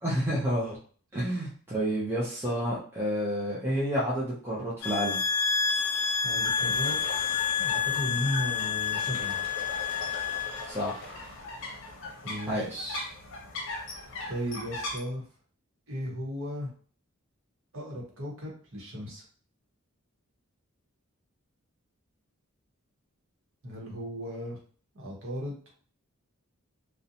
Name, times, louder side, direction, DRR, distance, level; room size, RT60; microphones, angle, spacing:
voice 1, 0.0-0.8 1.1-5.2 10.7-11.1 12.5-13.0, equal, 10° right, -8 dB, 0.5 m, -30 dB
sound 1, 4.8-10.7, left 6 dB, 90° left, 0.3 m, -29 dB
sound 2, 6.2-15.0, left 2 dB, 60° left, 0.7 m, -39 dB
voice 2, 6.2-9.4 12.2-12.7 14.3-15.2 15.9-16.7 17.7-19.2 23.6-24.6 24.9-25.7, equal, 60° right, -2 dB, 0.9 m, -36 dB
2.5 x 2.1 x 2.7 m, 0.44 s
head